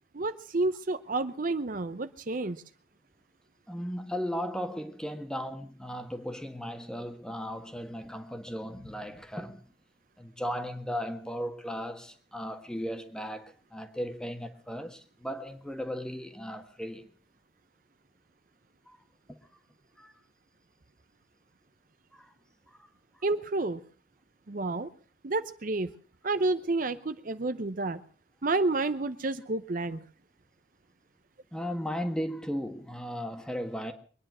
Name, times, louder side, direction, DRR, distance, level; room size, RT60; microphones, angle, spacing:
voice 1, 0.1-2.6 23.2-23.8 24.5-24.9 25.2-25.9 26.2-28.0 28.4-30.0, right 2 dB, 50° right, 0.7 m, -30 dB
voice 2, 3.7-9.6 10.2-17.1 18.9-19.0 19.3-19.4 20.0-20.1 22.1-22.3 22.7-22.9 31.5-33.9, equal, 5° left, 1.5 m, -36 dB
23.5 x 10.0 x 6.2 m
head